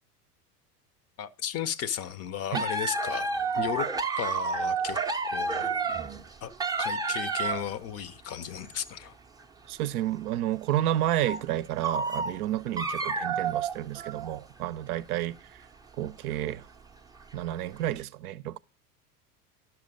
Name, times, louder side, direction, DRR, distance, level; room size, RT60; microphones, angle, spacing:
voice 1, 1.2-3.3 3.6-3.9 4.2-5.0 5.2-5.8 6.4-6.5 6.8-9.2, left 9 dB, 35° left, 0.6 m, -34 dB
sound 1, 2.5-7.7 8.4-8.9 9.4-9.5 10.0-10.1 11.1-11.5 11.8-14.6 15.0-15.1 16.0-16.3 17.1-17.4 17.7-17.8, right 4 dB, 10° right, 0.6 m, -30 dB
voice 2, 9.7-15.7 16.0-16.7 17.3-18.6, right 13 dB, 70° right, 0.6 m, -31 dB
10.5 x 5.9 x 5.2 m
hypercardioid pair, 85°, 47 cm